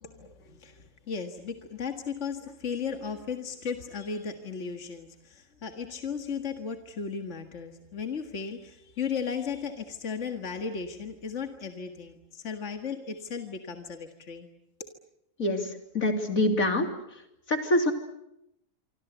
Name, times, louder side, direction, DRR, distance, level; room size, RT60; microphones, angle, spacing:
voice 1, 0.0-14.5 14.8-14.9, left 6 dB, 60° left, 5 dB, 2.1 m, -36 dB
voice 2, 15.4-16.9 17.5-17.9, left 1 dB, 85° left, 5 dB, 3.7 m, -25 dB
26.0 x 26.0 x 8.1 m, 0.82 s
omnidirectional pair, 1.4 m